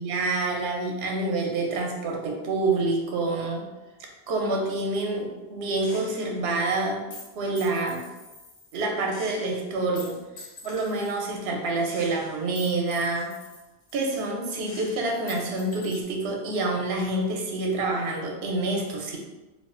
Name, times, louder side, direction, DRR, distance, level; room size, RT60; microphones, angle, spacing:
voice 1, 0.0-3.6 4.3-7.0 7.3-8.0 8.7-13.3 13.9-19.2, right 2 dB, 70° right, 0 dB, 0.8 m, -27 dB
Gunshot gunfire, 5.8-6.4 7.1-8.8 9.1-11.3 11.9-14.4 14.7-16.0, left 3 dB, 65° left, 1.0 m, -46 dB
2.4 x 2.4 x 3.6 m, 1.1 s
omnidirectional pair, 1.1 m